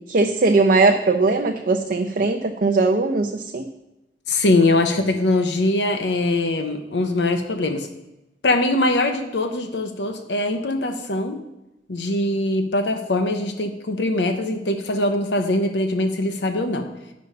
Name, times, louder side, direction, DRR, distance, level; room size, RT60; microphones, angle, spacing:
voice 1, 0.0-3.7, right 3 dB, 50° right, 5 dB, 0.6 m, -19 dB
voice 2, 4.3-7.9 8.4-11.4 11.9-16.9, left 2 dB, 65° left, 6 dB, 0.8 m, -22 dB
9.7 x 5.4 x 5.5 m, 0.97 s
head